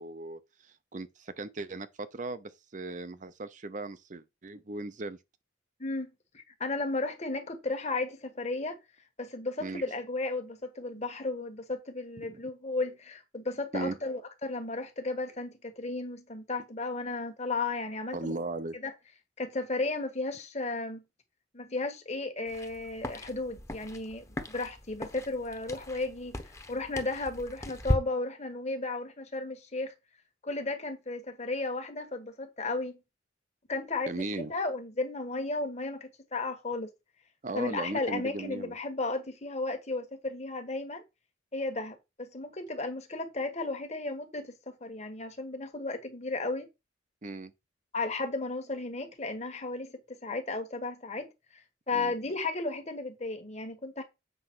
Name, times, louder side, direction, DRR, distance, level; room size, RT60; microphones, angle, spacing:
voice 1, 0.0-5.2 9.6-9.8 12.2-12.4 13.7-14.0 18.1-18.8 34.1-34.5 37.4-38.8 47.2-47.5 51.9-52.1, right 2 dB, 40° right, 0.6 m, -37 dB
voice 2, 5.8-8.8 9.2-18.4 18.7-18.9 19.4-21.0 21.5-26.4 26.7-29.9 30.4-33.0 33.7-34.2 34.5-36.9 37.5-41.0 41.5-46.7 47.9-51.3 51.5-54.0, left 3 dB, 35° left, 1.4 m, -34 dB
sound 1, 22.5-28.0, left 1 dB, 15° left, 1.0 m, -37 dB
7.7 x 3.5 x 6.1 m
head